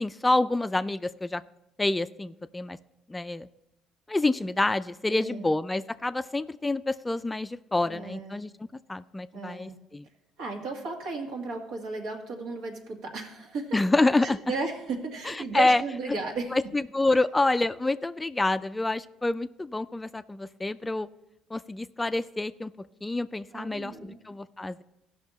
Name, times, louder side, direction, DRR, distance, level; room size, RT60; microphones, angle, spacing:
voice 1, 0.0-1.4 1.8-2.8 3.1-3.5 4.1-8.5 8.9-10.1 13.7-14.4 15.2-15.8 16.5-21.1 21.5-22.7 23.0-24.8, left 2 dB, 15° left, 13 dB, 0.3 m, -27 dB
voice 2, 5.1-5.5 7.8-8.4 9.3-9.7 10.4-13.8 14.2-16.6 23.5-24.2, right 3 dB, 75° right, 1 dB, 1.9 m, -35 dB
15.0 x 5.7 x 4.1 m, 0.89 s
supercardioid pair, 80°, 0 cm